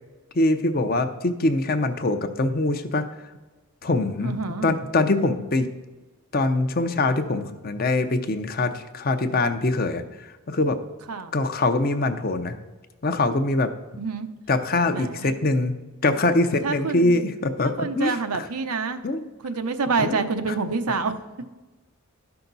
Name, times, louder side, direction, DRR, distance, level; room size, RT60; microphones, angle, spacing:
voice 1, 0.3-3.1 3.8-4.3 4.6-5.7 6.3-10.0 10.5-10.8 11.3-12.6 13.0-13.7 14.5-15.8 16.0-18.4 19.0-19.3 20.0-20.2, left 2 dB, 40° left, 8 dB, 0.6 m, -23 dB
voice 2, 4.2-4.8 11.1-11.3 14.0-14.3 14.9-15.3 16.6-17.2 17.8-19.0 19.4-21.1, right 4 dB, 90° right, 8 dB, 0.8 m, -27 dB
12.5 x 5.8 x 4.0 m, 1.2 s
head